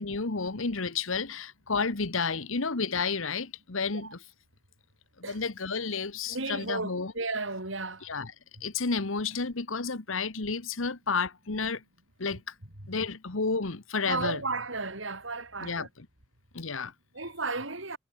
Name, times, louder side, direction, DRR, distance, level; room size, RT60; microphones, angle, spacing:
voice 1, 0.0-4.2 5.3-7.1 8.0-8.3 8.6-11.8 12.2-12.5 12.9-14.4 15.6-15.9 16.5-16.9, left 4 dB, 85° left, 1.4 m, -31 dB
voice 2, 6.3-8.1 12.8-12.9 14.1-15.9 17.1-18.0, right 3 dB, 75° right, 5.9 m, -34 dB
head